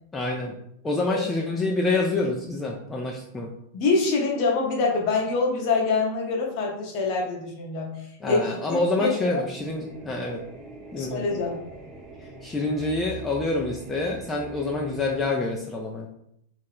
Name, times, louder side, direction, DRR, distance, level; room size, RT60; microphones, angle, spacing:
voice 1, 0.1-0.6 0.8-3.5 8.2-10.4 10.9-11.2 12.2-16.1, left 2 dB, 15° left, -2 dB, 0.3 m, -27 dB
voice 2, 3.7-7.9 8.2-8.4 8.7-9.4 11.0-11.6, left 4 dB, 40° left, -1 dB, 0.7 m, -25 dB
sound 1, 9.5-15.3, right 2 dB, 15° right, 0.7 m, -43 dB
2.3 x 2.1 x 3.5 m, 0.73 s
figure-of-eight pair, 90°, 0 cm